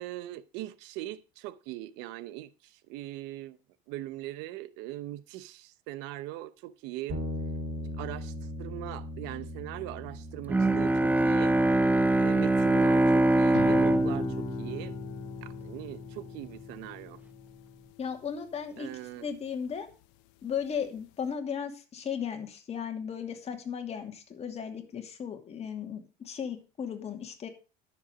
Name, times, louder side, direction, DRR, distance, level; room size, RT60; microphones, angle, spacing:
voice 1, 0.0-3.6 3.9-7.2 8.0-11.6 12.2-15.0 15.4-17.2 18.8-19.3, right 15 dB, 75° right, 0.8 m, -40 dB
sound 1, 7.1-16.6, left 1 dB, 50° right, 4.3 m, -41 dB
Bowed string instrument, 10.5-15.8, right 1 dB, 10° right, 0.5 m, -24 dB
sound 2, 13.5-20.1 20.5-21.0, left 16 dB, 75° left, 0.8 m, -43 dB
voice 2, 18.0-18.9 19.2-19.9 20.4-27.5, left 7 dB, 35° left, 2.6 m, -36 dB
11.5 x 7.1 x 5.0 m
supercardioid pair, 110°, 18 cm